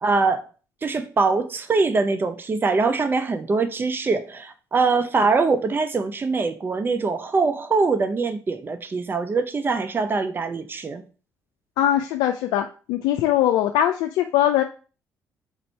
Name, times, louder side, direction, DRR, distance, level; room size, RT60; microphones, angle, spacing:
voice 1, 0.0-0.4 0.8-11.0, right 4 dB, 30° right, 10 dB, 0.6 m, -23 dB
voice 2, 11.8-14.6, left 11 dB, 90° left, 6 dB, 0.3 m, -21 dB
4.0 x 2.7 x 4.4 m, 0.36 s
supercardioid pair, 70°, 7 cm